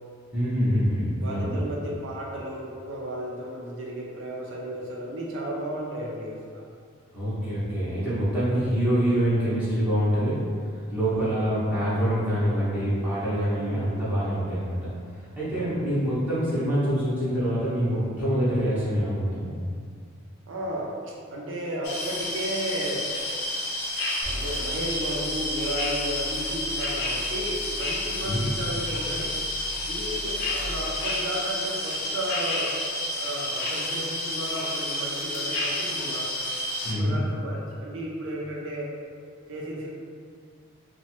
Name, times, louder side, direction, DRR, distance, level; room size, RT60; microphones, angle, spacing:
voice 1, 0.3-1.6 7.1-10.4 10.9-14.9 15.4-19.5 28.2-28.4 36.8-37.1, equal, 10° right, -13 dB, 0.7 m, -25 dB
voice 2, 1.2-6.6 11.1-11.4 13.5-14.0 15.5-15.8 20.5-23.1 24.0-29.4 29.8-32.8 33.2-36.3 36.8-38.9 39.5-39.9, right 1 dB, 60° right, -3 dB, 0.4 m, -34 dB
sound 1, 21.8-36.9, left 1 dB, 55° left, 0.5 m, -30 dB
sound 2, 24.2-30.6, left 2 dB, 75° left, 0.8 m, -40 dB
3.0 x 2.1 x 2.9 m, 2.2 s
head